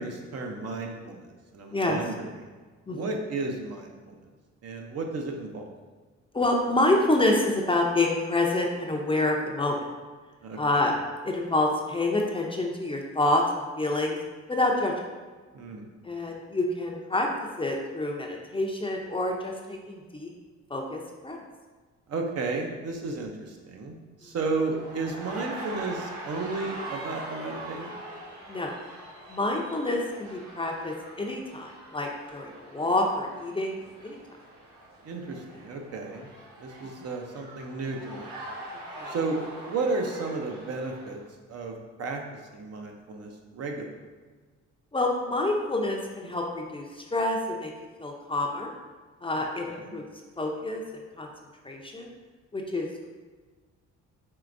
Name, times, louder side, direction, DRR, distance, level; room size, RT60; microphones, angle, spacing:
voice 1, 0.0-2.3 2.9-4.1 4.6-5.7 10.4-10.9 15.5-15.9 22.1-28.0 35.0-36.3 36.6-38.3 39.1-41.2 41.5-42.2 42.5-44.0 49.7-50.0, right 3 dB, 55° right, 2 dB, 0.7 m, -33 dB
voice 2, 6.3-9.8 10.5-10.9 11.2-14.2 14.5-14.9 16.0-17.3 17.6-20.3 20.7-21.4 28.5-28.8 29.3-34.2 36.8-36.9 39.0-39.1 44.9-47.7 48.0-48.7 49.2-50.1 50.4-51.3 51.6-52.1 52.5-53.1, left 2 dB, 20° left, 0 dB, 0.5 m, -27 dB
sound 1, 24.6-41.2, right 1 dB, 80° right, 1.4 m, -43 dB
4.6 x 3.3 x 2.5 m, 1.4 s
cardioid pair, 90°, 30 cm